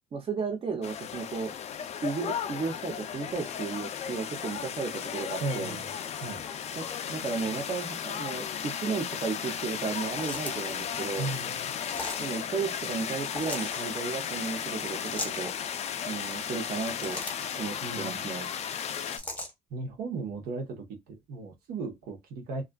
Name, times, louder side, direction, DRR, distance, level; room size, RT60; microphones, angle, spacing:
voice 1, 0.1-1.5 2.0-5.8 6.7-11.3 12.2-15.5 16.1-17.2 17.6-18.5, right 4 dB, 35° right, 0.7 m, -34 dB
sound 1, 0.8-19.2, left 8 dB, 45° left, 0.3 m, -35 dB
voice 2, 5.4-5.8 6.2-6.5 11.2-11.8 17.8-18.3 19.7-22.6, right 3 dB, 75° right, 1.0 m, -36 dB
sound 2, 10.0-10.8 11.9-12.3 13.2-13.8 15.0-15.4 16.7-17.5 19.1-19.5, left 1 dB, 10° left, 0.8 m, -38 dB
2.4 x 2.3 x 2.2 m
cardioid pair, 105°, 16 cm